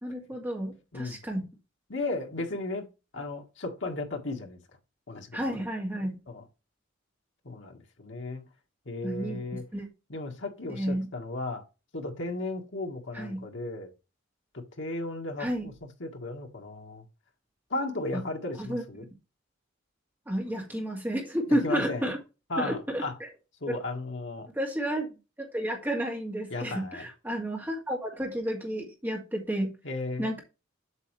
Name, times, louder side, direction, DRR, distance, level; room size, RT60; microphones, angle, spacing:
voice 1, 0.0-1.4 5.3-6.2 9.0-9.9 10.7-11.1 13.1-13.5 15.4-15.7 18.1-18.2 18.6-18.8 20.3-22.2 22.6-23.3 23.7-23.8 24.5-25.1 25.4-29.7 30.2-30.4, equal, 10° right, 2.3 m, -31 dB
voice 2, 1.9-2.9 3.1-4.6 5.1-5.6 6.3-6.4 7.5-8.4 8.9-9.6 10.1-11.6 11.9-13.9 14.8-17.0 17.7-19.1 21.5-22.1 22.5-23.2 23.6-24.5 26.5-27.0 29.8-30.3, left 2 dB, 65° left, 1.7 m, -35 dB
8.1 x 6.3 x 3.2 m
head